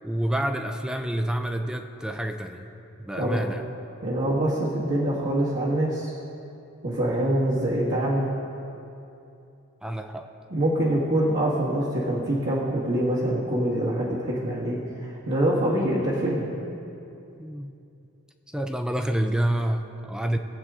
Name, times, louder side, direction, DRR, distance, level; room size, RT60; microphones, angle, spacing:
voice 1, 0.0-2.7 3.0-3.6 9.8-10.3 17.4-17.7 18.5-20.4, right 1 dB, 5° right, 5 dB, 0.5 m, -28 dB
voice 2, 4.0-6.1 6.8-8.3 10.5-16.5, right 1 dB, 50° right, -7 dB, 1.7 m, -25 dB
20.5 x 8.1 x 3.7 m, 2.8 s
head